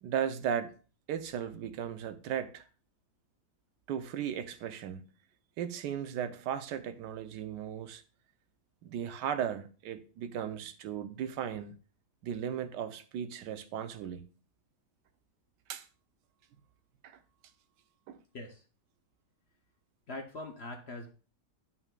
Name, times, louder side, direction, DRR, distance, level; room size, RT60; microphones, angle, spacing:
voice 1, 0.0-0.7 1.1-2.6 3.9-5.1 5.6-8.0 8.8-11.7 12.2-14.3 15.7-15.9 17.0-17.2 18.1-18.2, right 9 dB, 80° right, 1.3 m, -36 dB
voice 2, 20.1-21.1, left 2 dB, 50° left, 0.9 m, -42 dB
11.0 x 5.6 x 2.3 m
omnidirectional pair, 1.8 m